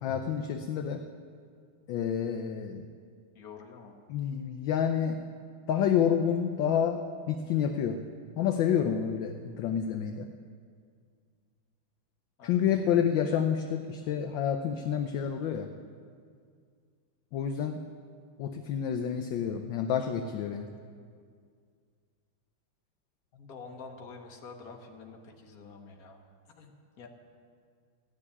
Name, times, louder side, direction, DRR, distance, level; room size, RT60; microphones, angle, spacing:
voice 1, 0.0-1.0 1.9-2.9 4.1-5.2 5.7-8.0 8.4-10.3 12.4-15.7 17.3-17.8 18.4-20.7, left 8 dB, 70° left, 6 dB, 1.3 m, -29 dB
voice 2, 3.3-4.0 12.4-12.6 23.3-26.2 26.6-27.1, left 4 dB, 50° left, 2 dB, 1.6 m, -47 dB
14.5 x 7.0 x 9.8 m, 2.2 s
omnidirectional pair, 2.3 m